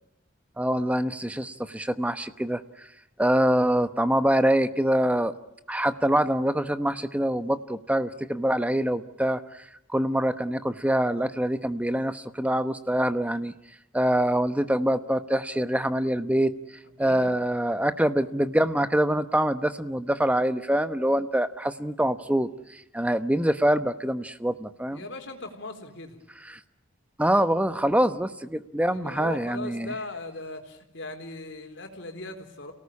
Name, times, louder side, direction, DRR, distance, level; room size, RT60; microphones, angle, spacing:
voice 1, 0.6-2.9 3.2-5.3 5.7-13.5 13.9-25.0 26.5-26.6 27.2-29.9, right 1 dB, 5° right, 11 dB, 1.0 m, -25 dB
voice 2, 17.0-17.3 24.9-26.2 28.9-32.7, left 2 dB, 65° left, 5 dB, 4.2 m, -39 dB
29.0 x 18.5 x 8.5 m, 0.90 s
head